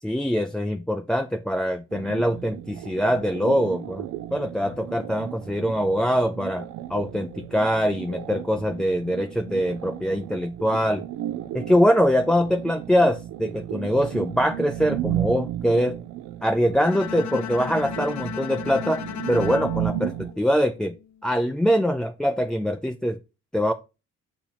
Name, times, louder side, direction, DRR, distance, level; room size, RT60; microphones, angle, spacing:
voice 1, 0.0-4.1 4.3-6.6 6.9-11.0 11.5-16.0 16.4-19.0 19.3-20.9 21.2-23.2 23.5-23.7, equal, ahead, 0.3 m, -23 dB
sound 1, 1.9-20.3, right 13 dB, 85° right, 0.5 m, -34 dB
Bowed string instrument, 16.8-21.0, left 10 dB, 65° left, 0.7 m, -35 dB
7.0 x 3.0 x 5.6 m
cardioid pair, 90°, 30 cm